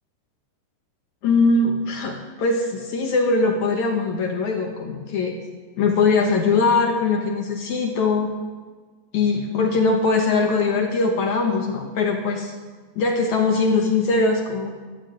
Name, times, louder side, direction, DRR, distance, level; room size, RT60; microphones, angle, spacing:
voice 1, 1.2-5.3 5.8-8.3 9.1-12.5 13.0-14.7, left 3 dB, 65° left, 2 dB, 1.9 m, -21 dB
13.5 x 11.5 x 7.9 m, 1.4 s
omnidirectional pair, 4.9 m